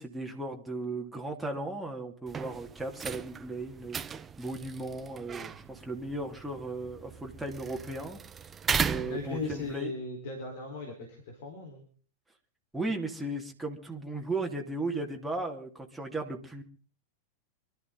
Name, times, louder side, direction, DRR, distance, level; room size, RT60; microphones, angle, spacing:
voice 1, 0.0-8.2 8.8-9.9 12.7-16.6, right 2 dB, 5° right, 0 dB, 2.6 m, -36 dB
sound 1, 2.3-9.8, right 6 dB, 20° right, 0.7 m, -37 dB
voice 2, 9.0-11.8, left 3 dB, 55° left, 2 dB, 4.3 m, -38 dB
26.0 x 13.0 x 3.9 m, 0.40 s
figure-of-eight pair, 90°, 0 cm